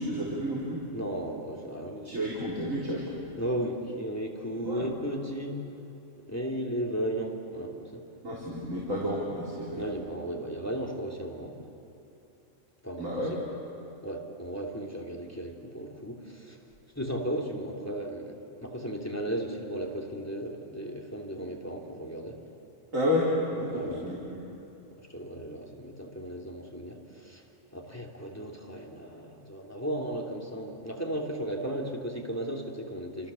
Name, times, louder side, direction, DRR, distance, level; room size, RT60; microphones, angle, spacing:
voice 1, 0.0-0.8 2.0-3.2 4.6-4.9 8.2-9.9 13.0-13.4 22.9-24.4, left 1 dB, 90° right, -6 dB, 4.5 m, -31 dB
voice 2, 0.9-2.4 3.4-5.6 6.3-8.0 9.8-11.6 12.8-13.2 14.0-16.6 16.9-22.4 23.7-24.1 24.9-27.4 27.7-33.3, right 1 dB, 10° left, -1 dB, 3.0 m, -35 dB
30.0 x 27.0 x 7.1 m, 3.0 s
omnidirectional pair, 1.3 m